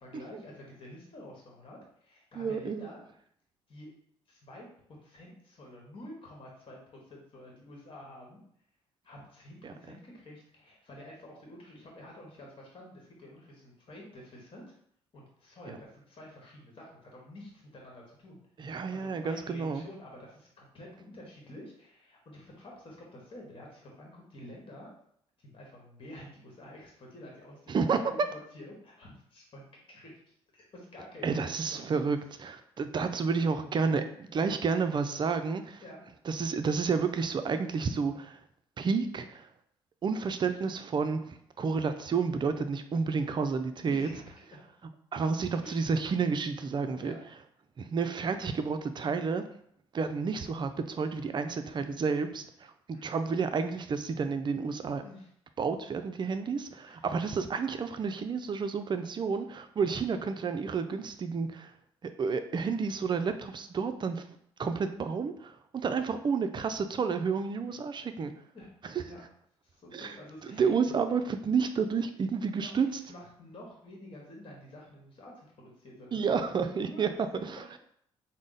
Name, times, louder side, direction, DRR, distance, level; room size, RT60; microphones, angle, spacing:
voice 1, 0.0-3.0 3.7-3.9 4.3-4.6 5.0-6.8 7.0-8.4 9.0-14.6 15.1-18.4 18.9-24.9 25.4-29.6 29.9-32.0 35.8-36.0 43.8-44.6 45.6-45.8 47.0-47.2 52.9-53.1 55.0-55.3 56.8-57.0 68.5-69.3 69.6-70.8 71.1-71.2 72.5-77.8, left 1 dB, 40° left, -1 dB, 1.2 m, -49 dB
voice 2, 2.4-2.9 9.6-9.7 15.7-15.8 18.6-19.8 27.7-28.1 31.2-32.2 32.4-32.5 32.8-35.8 36.3-38.4 38.8-39.5 40.0-44.1 45.1-47.2 47.8-49.4 49.9-52.4 53.0-55.0 55.6-61.7 62.0-64.2 64.6-68.3 69.9-70.2 70.5-72.9 76.1-77.1 77.5-77.6, right 5 dB, 35° right, 9 dB, 0.4 m, -30 dB
3.6 x 2.1 x 3.9 m, 0.67 s
hypercardioid pair, 50°, 13 cm